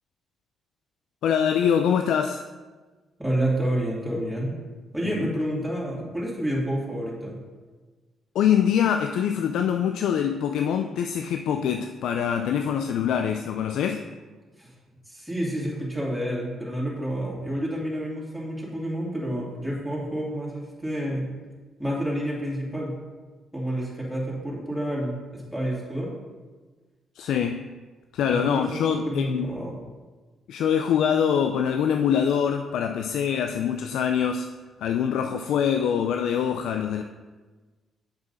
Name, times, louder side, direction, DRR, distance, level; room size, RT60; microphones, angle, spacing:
voice 1, 1.2-2.4 5.1-5.3 8.3-14.1 27.2-27.7 28.1-29.5 30.5-34.5 34.8-37.0, left 8 dB, 80° left, 6 dB, 0.4 m, -24 dB
voice 2, 3.2-4.5 4.9-7.4 14.6-14.7 15.1-21.3 21.8-22.9 23.5-26.1 28.3-29.8, right 1 dB, ahead, -5 dB, 2.6 m, -29 dB
7.7 x 6.2 x 4.1 m, 1.3 s
cardioid pair, 90°, 0 cm